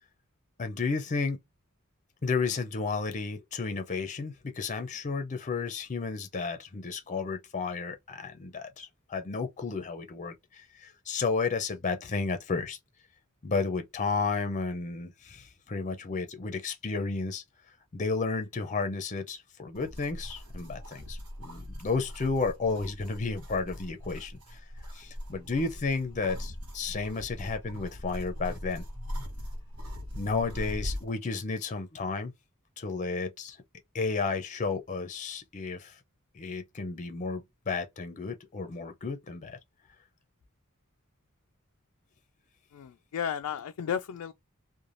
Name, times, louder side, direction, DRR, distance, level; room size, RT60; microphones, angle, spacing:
voice 1, 0.6-1.4 2.2-12.8 13.4-17.4 17.9-24.6 24.9-28.8 30.1-32.3 32.8-33.6 33.9-36.0 36.3-39.6, left 4 dB, 35° left, 0.5 m, -32 dB
sound 1, 19.7-31.1, equal, 75° right, 1.1 m, -40 dB
voice 2, 42.7-44.3, left 8 dB, 90° left, 0.3 m, -33 dB
3.1 x 2.2 x 2.5 m
head